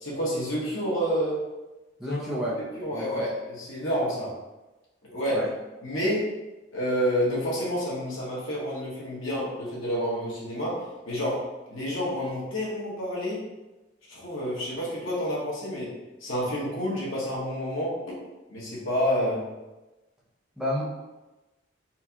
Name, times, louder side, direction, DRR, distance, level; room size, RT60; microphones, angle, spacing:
voice 1, 0.0-1.4 2.0-2.2 2.8-4.3 5.0-5.5 5.8-6.3 6.7-13.4 14.1-15.9 16.2-18.1 18.5-19.5, equal, 90° left, -6 dB, 1.3 m, -29 dB
voice 2, 2.0-2.6 2.9-3.2 5.3-5.5 20.6-20.8, equal, 5° right, -7 dB, 0.6 m, -30 dB
4.4 x 2.3 x 2.8 m, 1.1 s
head